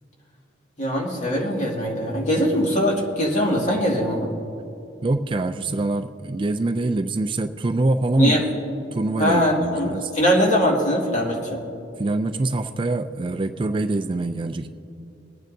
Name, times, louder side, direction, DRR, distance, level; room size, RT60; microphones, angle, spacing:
voice 1, 0.8-4.3 8.2-8.4 9.1-9.9 10.1-11.6, equal, 40° left, -2 dB, 2.2 m, -21 dB
voice 2, 5.0-8.4 8.9-10.1 12.0-14.7, right 2 dB, 30° right, 8 dB, 0.4 m, -24 dB
22.5 x 9.1 x 2.7 m, 2.8 s
head